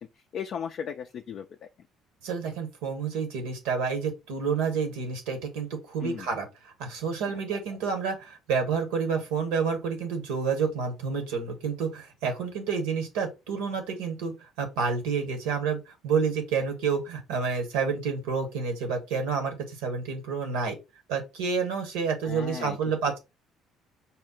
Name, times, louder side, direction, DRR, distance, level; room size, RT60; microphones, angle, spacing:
voice 1, 0.3-1.5 6.0-6.3 7.3-7.4 22.2-22.8, left 7 dB, 55° left, 0.3 m, -36 dB
voice 2, 2.2-20.8 21.1-23.2, right 5 dB, 75° right, 1.0 m, -29 dB
4.1 x 2.0 x 3.9 m
hypercardioid pair, 60°, 0 cm